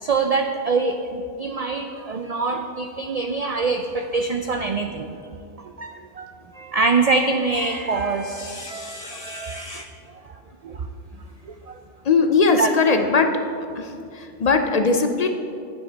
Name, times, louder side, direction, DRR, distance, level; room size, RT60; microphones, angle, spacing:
voice 1, 0.0-5.3 5.6-10.4 10.6-10.9 11.4-11.8 12.6-12.7 13.0-13.1, right 4 dB, 85° right, 6 dB, 0.3 m, -25 dB
voice 2, 12.1-13.4 13.8-15.3, left 4 dB, 60° left, 6 dB, 0.4 m, -19 dB
9.2 x 9.0 x 4.0 m, 2.5 s
omnidirectional pair, 1.2 m